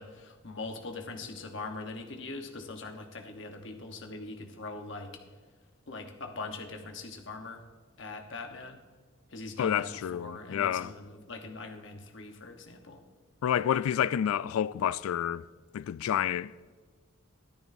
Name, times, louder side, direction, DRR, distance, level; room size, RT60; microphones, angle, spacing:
voice 1, 0.0-5.2 5.9-7.6 8.0-8.8 9.3-13.0 13.7-14.0, left 3 dB, 60° left, 1.1 m, -42 dB
voice 2, 9.6-10.9 13.4-15.5 15.7-16.5, left 9 dB, 90° left, 0.3 m, -29 dB
14.0 x 12.0 x 2.7 m
head